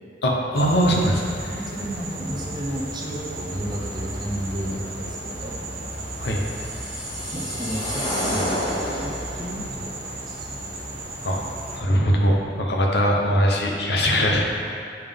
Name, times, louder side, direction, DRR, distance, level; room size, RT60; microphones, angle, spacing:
voice 1, 0.2-1.5 6.2-6.4 11.2-11.4 11.7-14.4, equal, 65° left, -1 dB, 0.8 m, -21 dB
sound 1, 0.5-11.8, right 1 dB, 55° right, 1.0 m, -34 dB
voice 2, 1.5-5.6 7.3-8.8 9.0-10.5 14.6-14.7, equal, 25° right, -2 dB, 0.7 m, -32 dB
sound 2, 6.2-9.4, equal, 20° left, 1.0 m, -29 dB
8.9 x 3.5 x 3.6 m, 2.4 s
head